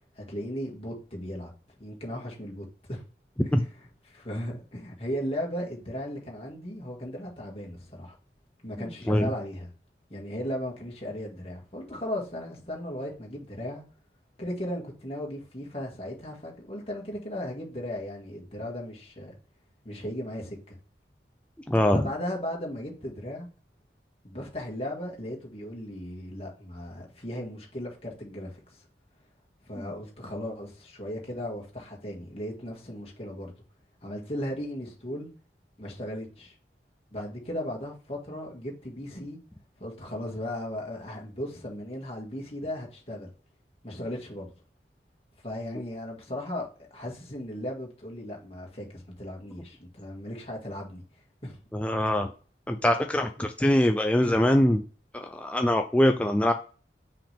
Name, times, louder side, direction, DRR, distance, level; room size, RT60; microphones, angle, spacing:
voice 1, 0.2-1.5 1.8-3.0 3.4-8.2 8.6-9.7 10.1-13.8 14.4-19.4 19.8-20.8 21.9-23.5 24.2-28.8 29.6-33.5 34.0-35.3 35.8-36.6 37.1-39.4 39.8-43.3 43.8-44.5 45.4-51.0 51.4-51.6 53.4-53.5, equal, 35° left, 1.9 m, -36 dB
voice 2, 21.7-22.0 29.8-29.9 51.7-52.3 52.7-54.8 55.1-56.5, left 1 dB, 5° left, 0.4 m, -23 dB
5.9 x 5.0 x 3.4 m
head